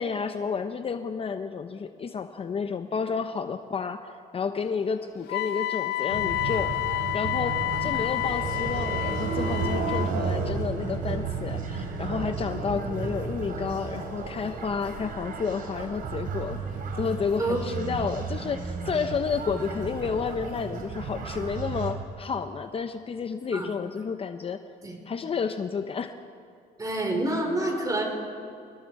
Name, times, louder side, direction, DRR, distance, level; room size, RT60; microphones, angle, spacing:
voice 1, 0.0-16.6 17.0-24.6 25.1-26.2, left 5 dB, 35° left, 8 dB, 0.9 m, -31 dB
Wind instrument woodwind instrument, 5.3-10.1, left 16 dB, 75° left, 0.5 m, -29 dB
sound 1, 6.1-21.9, right 4 dB, 60° right, 3.2 m, -33 dB
voice 2, 17.4-17.7 23.5-23.7 24.8-25.0 26.8-28.0, right 1 dB, 20° right, 2 dB, 4.4 m, -28 dB
27.5 x 20.5 x 4.8 m, 2.5 s
cardioid pair, 110°, 17 cm